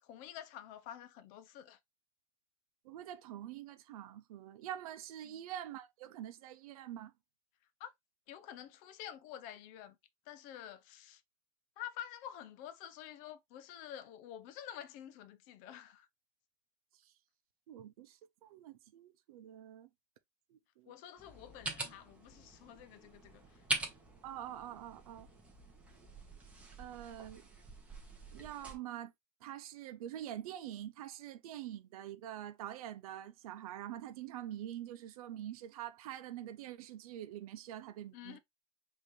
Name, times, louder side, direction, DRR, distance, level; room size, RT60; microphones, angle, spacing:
voice 1, 0.0-1.8 5.2-5.4 7.8-7.9 8.3-10.0 10.3-11.2 11.8-16.1 20.8-23.6 38.1-38.4, left 11 dB, 45° left, 0.7 m, -49 dB
voice 2, 2.8-7.1 16.9-17.1 17.7-19.9 20.5-20.9 24.2-25.3 26.8-27.4 28.3-29.1 29.4-38.4, right 11 dB, 90° right, 0.6 m, -45 dB
sound 1, 21.2-28.8, right 2 dB, 5° right, 1.2 m, -44 dB
5.2 x 2.8 x 3.2 m
supercardioid pair, 155°, 18 cm